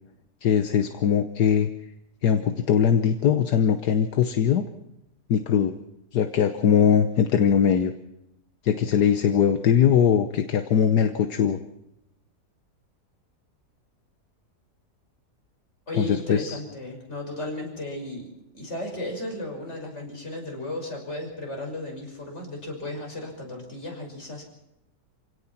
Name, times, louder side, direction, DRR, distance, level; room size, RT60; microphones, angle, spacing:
voice 1, 0.4-1.7 2.2-4.7 5.3-5.7 6.1-7.9 8.6-11.6 16.0-16.6, left 8 dB, 75° left, 8 dB, 1.5 m, -21 dB
voice 2, 15.9-18.3 18.5-24.4, left 1 dB, 40° left, 0 dB, 6.5 m, -35 dB
27.0 x 17.5 x 5.9 m, 0.86 s
omnidirectional pair, 1.8 m